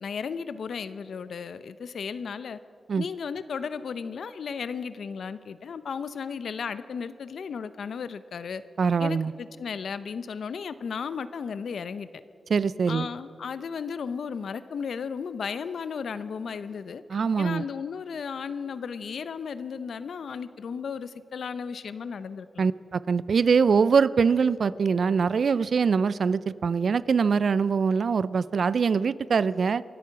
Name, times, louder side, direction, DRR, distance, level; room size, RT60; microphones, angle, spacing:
voice 1, 0.0-2.6 3.0-8.6 9.0-12.1 12.9-17.0 17.4-22.7, left 6 dB, 75° left, 14 dB, 0.6 m, -35 dB
voice 2, 8.8-9.3 12.5-13.1 17.1-17.6 22.6-29.8, right 5 dB, 65° right, 19 dB, 0.3 m, -23 dB
25.0 x 8.4 x 5.9 m, 2.5 s
cardioid pair, 70°, 0 cm